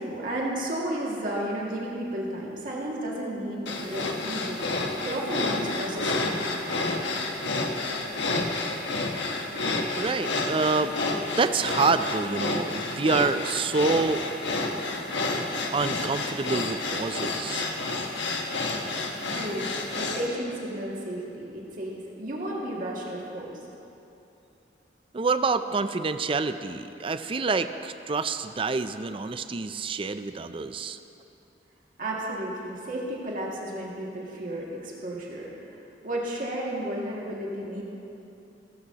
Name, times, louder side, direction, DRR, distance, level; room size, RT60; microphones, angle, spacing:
voice 1, 0.0-4.7 5.0-6.4 19.2-19.7 19.9-23.6 32.0-35.5 36.0-37.8, right 1 dB, 50° right, -4 dB, 2.2 m, -33 dB
sound 1, 3.7-20.3, left 2 dB, 90° left, 1.3 m, -30 dB
voice 2, 10.0-10.9 11.3-14.2 15.7-17.7 25.1-31.0, right 4 dB, 30° right, 10 dB, 0.4 m, -27 dB
17.0 x 14.5 x 2.9 m, 2.8 s
head